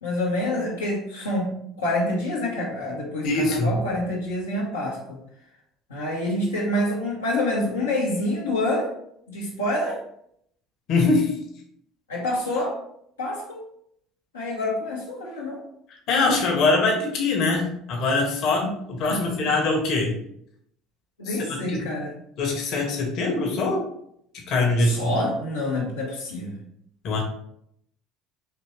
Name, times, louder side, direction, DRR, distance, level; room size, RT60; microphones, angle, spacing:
voice 1, 0.0-1.5 1.8-5.0 5.9-8.9 9.3-10.0 12.1-12.7 13.2-13.6 14.3-15.6 18.6-18.8 19.1-19.3 21.2-22.2 24.8-26.6, left 1 dB, 90° left, -5 dB, 0.9 m, -27 dB
voice 2, 3.2-3.7 10.9-11.4 16.1-20.2 21.3-21.8 22.4-23.8 24.5-25.1 27.0-27.2, left 3 dB, 55° left, 1 dB, 1.1 m, -23 dB
4.4 x 3.0 x 3.0 m, 0.71 s
hypercardioid pair, 65°, 0 cm